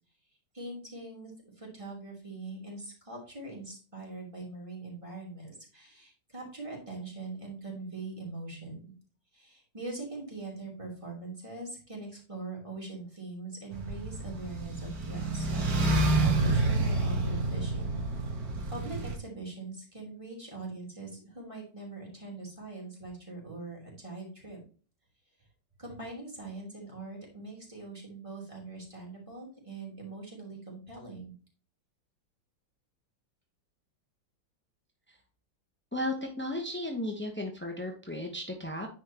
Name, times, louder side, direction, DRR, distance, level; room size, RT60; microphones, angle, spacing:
voice 1, 0.5-8.8 9.3-18.0 18.7-24.6 25.8-31.3, right 3 dB, 15° right, -2 dB, 2.8 m, -42 dB
sound 1, 13.7-19.2, right 2 dB, 55° right, 1.8 m, -28 dB
voice 2, 35.9-38.9, left 1 dB, 15° left, 2 dB, 0.4 m, -34 dB
9.7 x 4.4 x 2.9 m, 0.39 s
omnidirectional pair, 2.0 m